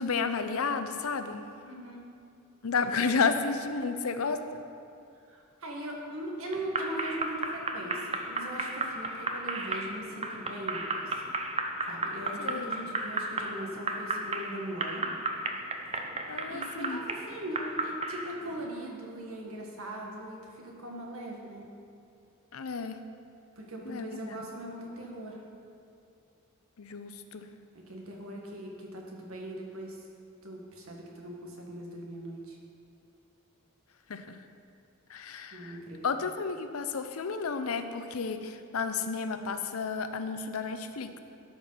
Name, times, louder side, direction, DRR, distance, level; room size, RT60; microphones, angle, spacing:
voice 1, 0.0-1.5 2.6-4.6 12.4-12.8 16.3-17.0 22.5-23.0 23.9-24.3 26.8-27.5 34.1-34.4 35.1-35.8 36.0-41.2, left 5 dB, 85° left, 9 dB, 0.6 m, -32 dB
voice 2, 1.6-2.0 5.3-11.2 11.9-15.1 16.5-21.7 23.6-25.4 27.9-30.0 30.4-32.6 35.5-36.1, right 1 dB, 75° right, 0 dB, 1.8 m, -40 dB
sound 1, 6.5-18.7, right 2 dB, 30° right, 0.7 m, -34 dB
12.5 x 5.2 x 5.8 m, 2.5 s
head